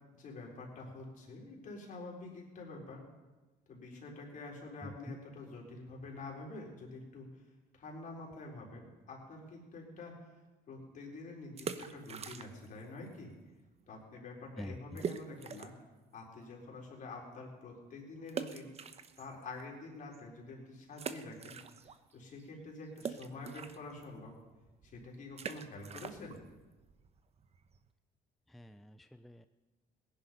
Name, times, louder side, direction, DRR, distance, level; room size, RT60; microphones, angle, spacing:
voice 1, 0.1-3.0 3.7-7.3 7.8-10.2 10.7-13.3 13.9-15.7 16.1-18.7 19.2-21.6 22.1-24.3 24.8-26.4, left 2 dB, 50° left, -1 dB, 4.3 m, -47 dB
voice 2, 4.8-5.2 14.6-15.0 28.5-29.5, equal, ahead, 10 dB, 0.4 m, -46 dB
sound 1, 11.4-12.8 13.1-13.2 13.8-13.9 14.1-14.2 15.0-15.9 16.4-16.5 18.3-19.6 20.1-20.2 20.9-22.1 22.4-27.9, right 6 dB, 40° right, 0.9 m, -44 dB
18.0 x 10.5 x 5.3 m, 1.2 s
cardioid pair, 110°, 17 cm